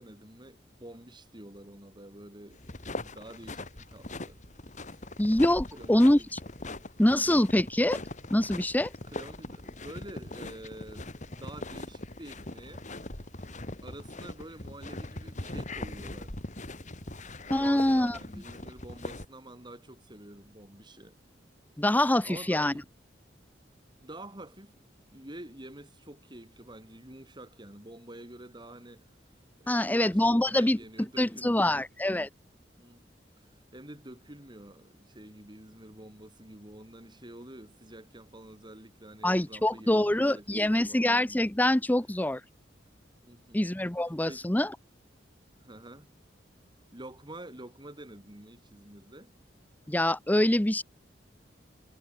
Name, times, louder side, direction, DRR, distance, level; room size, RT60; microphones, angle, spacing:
voice 1, 0.0-2.6 2.9-4.4 5.7-6.3 6.6-6.9 9.1-12.9 13.8-16.4 17.4-21.2 22.2-22.8 24.0-24.8 25.1-29.1 29.6-31.8 32.8-33.0 33.4-41.1 43.3-43.6 44.3-44.5 45.6-46.1 46.9-49.3, right 1 dB, 25° right, 4.9 m, -48 dB
sound 1, 2.5-19.2, left 2 dB, 40° left, 3.6 m, -41 dB
voice 2, 5.2-6.2 7.0-8.0 8.3-8.9 17.5-18.2 21.8-22.7 29.7-32.3 39.2-42.4 43.5-44.7 49.9-50.8, left 1 dB, 10° left, 0.7 m, -25 dB
head